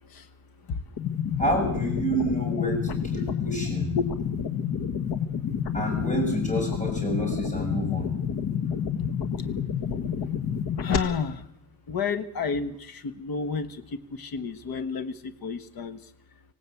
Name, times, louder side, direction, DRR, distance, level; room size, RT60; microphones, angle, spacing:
sound 1, 1.0-11.0, left 7 dB, 80° left, 1.8 m, -29 dB
voice 1, 1.4-3.9 5.7-8.1, right 1 dB, 20° left, 1 dB, 6.7 m, -28 dB
voice 2, 10.8-11.4 11.9-12.7 13.0-13.7 14.2-15.1 15.4-16.0, left 5 dB, 60° left, 10 dB, 1.5 m, -29 dB
25.5 x 17.0 x 8.4 m, 0.80 s
wide cardioid pair, 160°, 39 cm